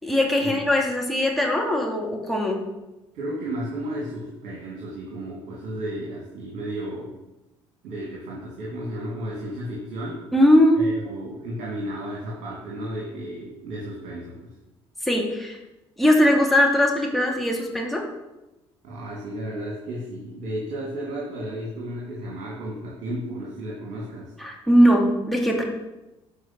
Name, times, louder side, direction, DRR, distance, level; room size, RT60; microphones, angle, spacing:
voice 1, 0.0-2.6 10.3-10.8 15.0-15.6 16.0-18.0 24.4-25.6, equal, ahead, -1 dB, 2.6 m, -20 dB
voice 2, 3.1-7.1 7.8-10.2 10.8-14.5 18.8-24.3, right 1 dB, 55° right, -5 dB, 2.5 m, -33 dB
11.5 x 4.6 x 6.0 m, 1.0 s
figure-of-eight pair, 50°, 15 cm